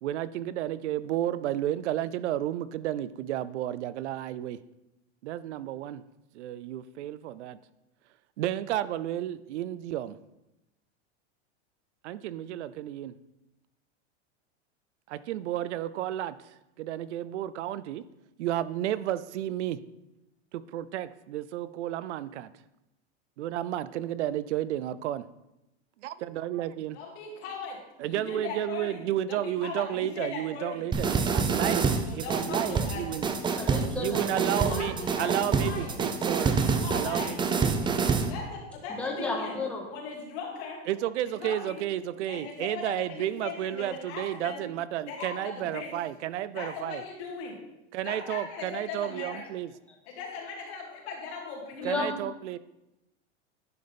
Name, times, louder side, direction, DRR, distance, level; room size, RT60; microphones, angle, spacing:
voice 1, 0.0-4.6 5.2-6.0 6.3-7.6 8.4-10.2 12.0-13.1 15.1-16.4 16.8-18.1 18.4-19.8 20.5-22.5 23.4-25.2 26.0-27.0 28.0-33.3 34.0-36.6 36.9-37.8 40.9-47.0 47.9-49.7 51.8-52.6, right 12 dB, 85° right, 16 dB, 0.5 m, -32 dB
voice 2, 26.9-27.8 28.1-29.0 29.3-30.8 32.0-33.0 34.5-36.0 36.5-37.4 38.3-39.6 39.9-40.8 41.4-41.8 42.3-44.6 45.1-45.9 46.5-47.6 48.0-49.4 50.1-52.0, left 4 dB, 65° left, -2 dB, 3.1 m, -39 dB
sound 1, 30.9-38.3, right 5 dB, 15° right, 0.5 m, -27 dB
voice 3, 33.6-34.7 38.9-39.9 51.8-52.2, left 2 dB, 5° left, -1 dB, 1.7 m, -33 dB
10.5 x 5.3 x 4.1 m, 0.93 s
supercardioid pair, 125°, 34 cm